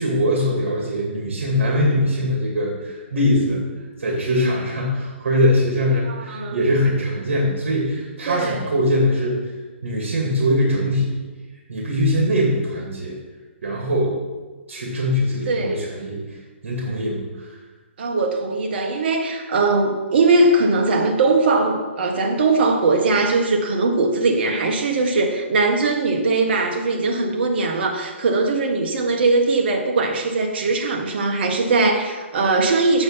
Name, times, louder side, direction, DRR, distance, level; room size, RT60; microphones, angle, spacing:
voice 1, 0.0-9.4 9.8-11.2 11.7-13.2 13.6-14.2 14.7-16.2 16.6-17.5, left 1 dB, 70° right, -1 dB, 2.4 m, -22 dB
voice 2, 6.1-6.6 8.3-8.6 15.4-15.8 18.0-33.0, right 3 dB, 50° right, 2 dB, 1.6 m, -20 dB
7.8 x 7.1 x 5.7 m, 1.3 s
hypercardioid pair, 150°, 7 cm